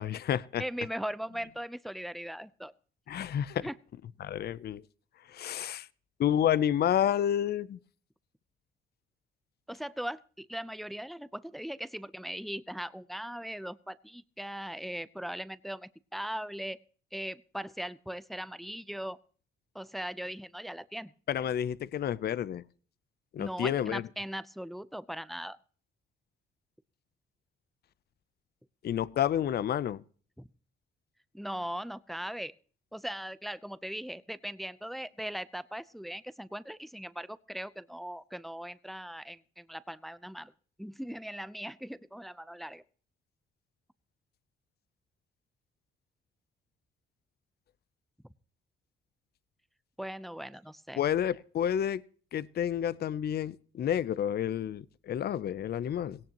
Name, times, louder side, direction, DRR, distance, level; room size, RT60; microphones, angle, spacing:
voice 1, 0.0-0.6 3.1-3.7 4.2-4.8 5.3-5.9 6.2-7.8 21.3-22.6 23.3-24.0 28.8-30.0 51.0-52.0 52.3-56.2, left 10 dB, 55° left, 0.6 m, -30 dB
voice 2, 0.6-2.7 3.6-3.8 9.7-16.8 17.1-19.2 19.7-21.1 23.4-25.6 30.4-30.5 31.3-32.5 32.9-40.5 40.8-42.8 50.0-51.0, equal, ahead, 0.7 m, -39 dB
17.5 x 17.0 x 3.0 m
cardioid pair, 90°, 20 cm